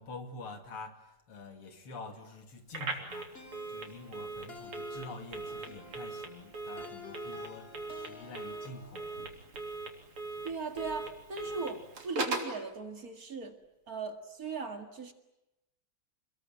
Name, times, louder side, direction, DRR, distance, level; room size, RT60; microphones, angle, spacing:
voice 1, 0.0-3.3 3.7-9.1, left 3 dB, 80° left, 6 dB, 3.6 m, -47 dB
Telephone, 2.7-12.6, right 3 dB, 85° right, 4.4 m, -40 dB
sound 1, 3.3-9.1, left 4 dB, 25° left, 3.1 m, -50 dB
voice 2, 10.4-13.6 13.9-15.1, right 4 dB, 40° right, 7 dB, 2.4 m, -39 dB
28.5 x 21.5 x 9.2 m, 0.92 s
omnidirectional pair, 2.4 m